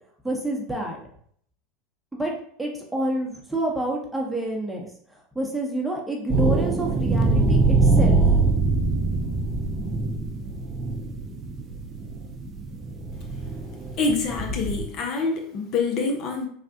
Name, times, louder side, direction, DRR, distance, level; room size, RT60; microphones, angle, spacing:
voice 1, 0.2-1.0 2.1-8.2, right 1 dB, 5° right, -1 dB, 0.8 m, -29 dB
sound 1, 6.3-14.8, right 3 dB, 35° right, 0.5 m, -23 dB
voice 2, 14.0-16.5, left 4 dB, 50° left, 3 dB, 0.6 m, -26 dB
3.4 x 2.3 x 2.7 m, 0.62 s
hypercardioid pair, 90°, 0 cm